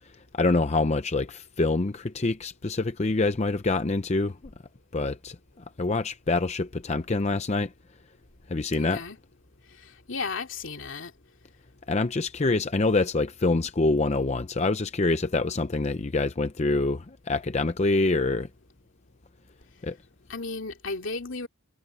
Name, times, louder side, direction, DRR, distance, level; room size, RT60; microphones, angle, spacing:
voice 1, 0.3-4.4 4.9-5.4 5.8-7.7 8.5-9.0 11.9-18.5 19.8-20.0, left 3 dB, 35° left, 0.6 m, -25 dB
voice 2, 8.8-9.2 9.8-11.1 20.3-21.5, left 4 dB, 70° left, 2.7 m, -34 dB
head